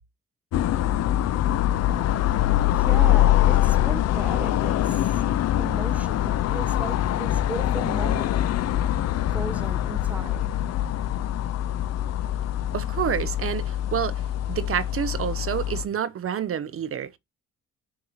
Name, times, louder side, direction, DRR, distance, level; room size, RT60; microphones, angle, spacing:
sound 1, 0.5-15.8, left 12 dB, 55° left, 0.5 m, -24 dB
voice 1, 2.7-5.2 5.6-8.4 9.3-10.6, right 2 dB, 5° right, 0.6 m, -36 dB
voice 2, 12.7-14.2 14.5-17.2, right 9 dB, 50° right, 0.6 m, -28 dB
6.4 x 2.8 x 5.7 m
cardioid pair, 90°, 30 cm